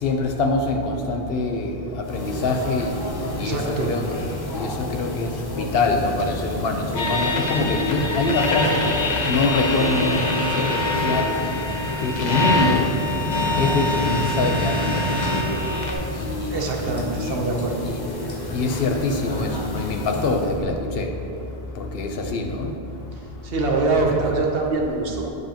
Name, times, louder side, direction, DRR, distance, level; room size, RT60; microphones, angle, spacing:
voice 1, 0.0-11.3 12.0-12.9 13.6-15.0 16.2-17.4 17.8-18.0 18.5-21.1 21.8-22.7 23.7-24.4, left 3 dB, 75° left, 3 dB, 0.9 m, -25 dB
sound 1, 2.0-20.6, left 2 dB, 30° left, 0.5 m, -32 dB
voice 2, 3.4-3.9 16.5-17.7 23.4-25.3, right 3 dB, 70° right, 1 dB, 1.1 m, -24 dB
sound 2, 6.9-15.9, left 2 dB, 50° left, 0.8 m, -24 dB
7.8 x 7.8 x 2.9 m, 2.8 s
omnidirectional pair, 1.0 m